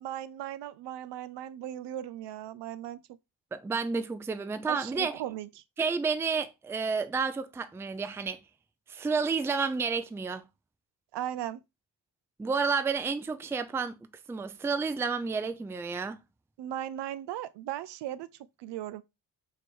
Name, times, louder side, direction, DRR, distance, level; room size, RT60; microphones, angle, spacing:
voice 1, 0.0-3.0 4.7-5.6 11.1-11.6 16.6-18.3 18.6-19.0, right 12 dB, 65° right, 0.5 m, -37 dB
voice 2, 3.5-5.2 5.8-8.4 8.9-10.4 12.4-14.0 14.3-16.2, right 5 dB, 5° right, 0.4 m, -30 dB
3.0 x 2.9 x 4.3 m
supercardioid pair, 60°, 46 cm